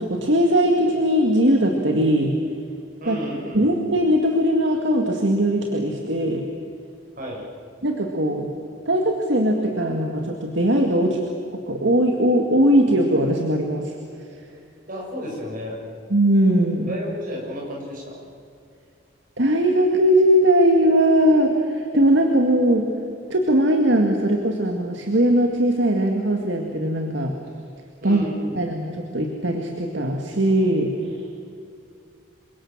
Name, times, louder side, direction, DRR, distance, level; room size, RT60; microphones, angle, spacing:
voice 1, 0.0-2.3 3.1-3.2 3.5-6.4 7.8-8.5 8.9-11.2 11.5-14.0 16.1-16.9 19.4-22.9 23.3-27.3 28.0-28.2 28.6-31.1, right 1 dB, 60° right, 2 dB, 2.1 m, -20 dB
voice 2, 3.0-3.7 7.2-7.5 14.9-15.8 16.9-18.3 28.0-28.7, equal, 45° right, -2 dB, 7.3 m, -32 dB
28.0 x 23.5 x 7.5 m, 2.4 s
head